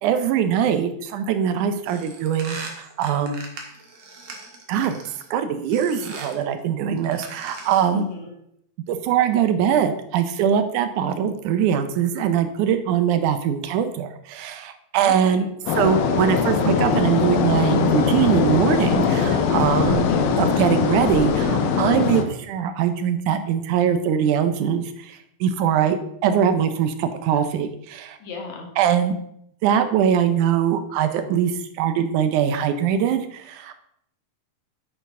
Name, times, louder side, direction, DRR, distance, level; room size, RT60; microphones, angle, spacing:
voice 1, 0.0-3.4 4.7-5.0 5.3-8.1 8.9-15.5 15.7-28.2 28.8-29.2 29.6-33.7, right 8 dB, 75° right, 8 dB, 2.0 m, -22 dB
sound 1, 1.9-5.3 5.7-6.4 7.0-8.0, right 3 dB, 50° right, 1.9 m, -39 dB
voice 2, 7.9-8.3 15.0-15.5 20.0-20.4 28.2-28.7, left 4 dB, 60° left, 2 dB, 2.6 m, -35 dB
sound 2, 15.7-22.2, left 6 dB, 90° left, 2.8 m, -21 dB
9.8 x 8.7 x 3.6 m, 0.73 s
omnidirectional pair, 4.1 m